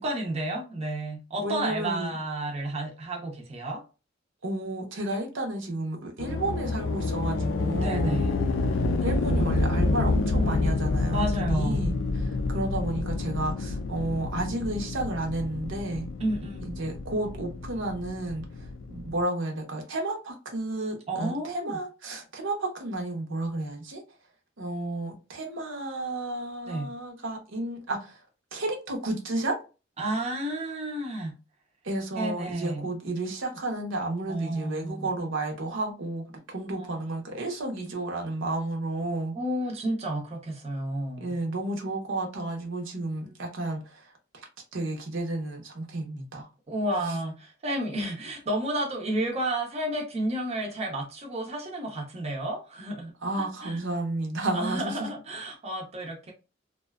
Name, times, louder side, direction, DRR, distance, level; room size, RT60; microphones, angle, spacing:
voice 1, 0.0-3.8 7.7-8.3 11.1-11.9 16.2-16.7 21.1-21.8 26.7-26.9 30.0-31.3 32.2-32.9 34.3-35.1 36.8-37.0 39.4-41.3 43.2-43.3 46.7-53.1 53.4-53.8 54.5-56.3, right 1 dB, 35° right, 0.6 m, -31 dB
voice 2, 1.4-2.1 4.4-8.2 8.7-16.1 16.6-24.0 24.6-28.2 28.5-29.6 31.8-39.4 41.2-46.5 47.0-47.2 53.2-55.1, right 2 dB, 75° right, 0.7 m, -32 dB
sound 1, 6.2-19.2, left 3 dB, 70° left, 0.3 m, -28 dB
2.6 x 2.2 x 2.2 m
head